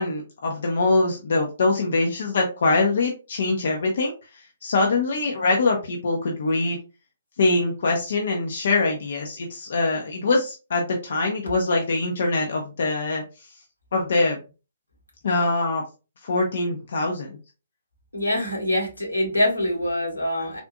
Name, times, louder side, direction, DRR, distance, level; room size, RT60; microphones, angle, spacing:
voice 1, 0.0-6.8 7.4-13.5 13.9-14.4 15.2-15.8 16.2-17.4, left 3 dB, 55° left, 1 dB, 0.6 m, -23 dB
voice 2, 18.1-20.6, left 1 dB, 90° left, -2 dB, 1.7 m, -24 dB
3.7 x 2.6 x 2.4 m, 0.31 s
figure-of-eight pair, 130°, 0 cm